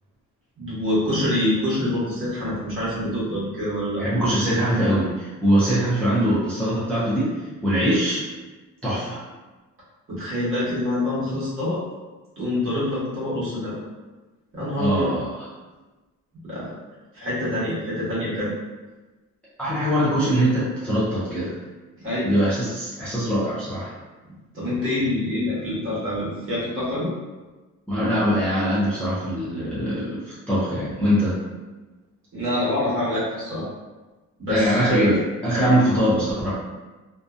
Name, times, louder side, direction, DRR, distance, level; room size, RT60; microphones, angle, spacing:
voice 1, 0.6-4.0 10.1-11.8 12.4-13.8 14.5-15.1 16.5-16.7 17.1-18.5 22.0-22.3 24.5-27.1 32.3-33.6 34.4-35.2, left 1 dB, 45° right, -10 dB, 1.2 m, -25 dB
voice 2, 3.9-8.2 8.8-9.2 14.8-15.5 19.6-21.6 22.2-23.9 27.9-31.4 34.5-36.5, equal, 5° left, -11 dB, 0.4 m, -22 dB
2.6 x 2.1 x 2.4 m, 1.2 s
cardioid pair, 175°, 30 cm